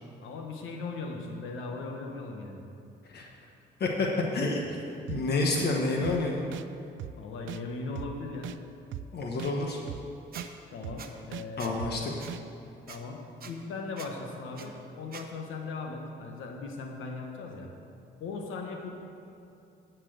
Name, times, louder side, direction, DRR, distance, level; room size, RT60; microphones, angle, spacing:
voice 1, 0.2-2.6 7.2-8.5 10.7-12.2 12.9-17.7 18.2-18.9, left 3 dB, 85° left, 2 dB, 1.3 m, -38 dB
voice 2, 4.3-4.8 5.1-6.4 9.1-9.8 11.6-12.1, left 3 dB, 55° left, 0 dB, 1.3 m, -28 dB
sound 1, 5.1-5.2 5.6-5.7 6.0-6.2 6.5-6.6 7.0-7.1 7.5-7.6 8.0-8.1 8.4-8.6 8.9-9.0 9.4-9.5 9.9-10.0 10.3-10.5 10.8-11.0 11.3-11.4 11.8-11.9 12.3-12.4, right 12 dB, 75° right, 0.4 m, -38 dB
Squeak, 10.3-10.5 11.0-11.1 11.6-11.7 12.2-12.3 12.9-13.0 13.4-13.5 14.0-14.1 14.5-14.7 15.1-15.2, right 7 dB, 50° right, 0.9 m, -44 dB
12.0 x 4.6 x 7.8 m, 2.7 s
cardioid pair, 90°, 20 cm